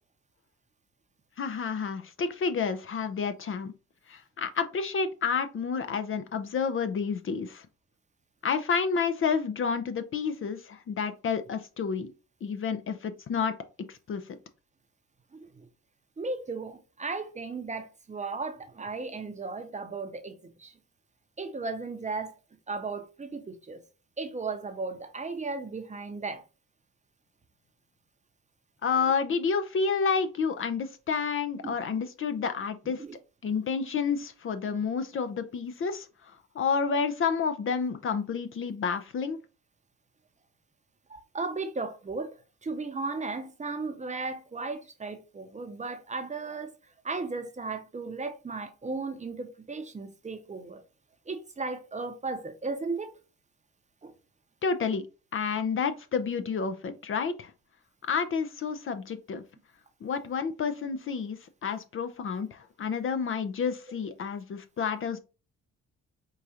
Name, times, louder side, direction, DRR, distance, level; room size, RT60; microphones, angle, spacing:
voice 1, 1.4-3.7 4.1-7.7 8.4-12.1 12.4-13.5 13.9-14.2 28.8-33.0 33.4-39.4 54.6-55.0 55.3-57.5 58.0-59.4 60.0-65.2, left 5 dB, 45° left, 0.5 m, -30 dB
voice 2, 15.3-15.7 16.2-20.8 21.4-22.3 22.7-23.8 24.2-26.4 31.6-32.0 33.0-33.2 41.1-46.7 47.0-50.8 51.3-53.1 54.0-54.1, right 3 dB, 25° right, 0.7 m, -36 dB
4.6 x 2.4 x 2.8 m
cardioid pair, 90°, 30 cm